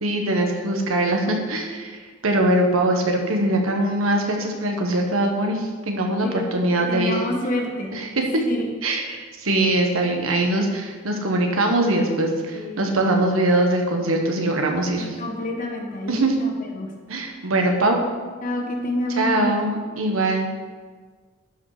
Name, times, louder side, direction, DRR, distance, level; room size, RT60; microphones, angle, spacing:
voice 1, 0.0-2.0 2.2-7.2 7.9-8.4 8.8-15.2 16.1-16.3 17.1-18.0 19.2-20.5, right 1 dB, 80° right, 2 dB, 1.4 m, -22 dB
voice 2, 6.9-7.9 8.5-8.7 12.5-12.8 15.0-16.9 18.4-19.5, left 1 dB, 40° left, 1 dB, 1.4 m, -28 dB
12.0 x 5.4 x 5.0 m, 1.5 s
head